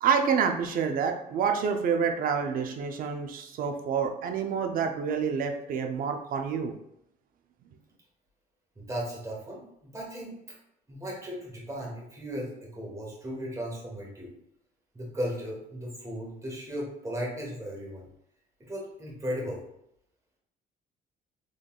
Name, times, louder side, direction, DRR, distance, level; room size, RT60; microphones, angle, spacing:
voice 1, 0.0-6.8, right 6 dB, 55° right, 5 dB, 0.6 m, -28 dB
voice 2, 8.8-10.5 10.9-14.3 14.9-18.1 18.6-19.6, equal, 20° right, -3 dB, 1.4 m, -36 dB
3.8 x 3.4 x 2.4 m, 0.76 s
cardioid pair, 110°, 17 cm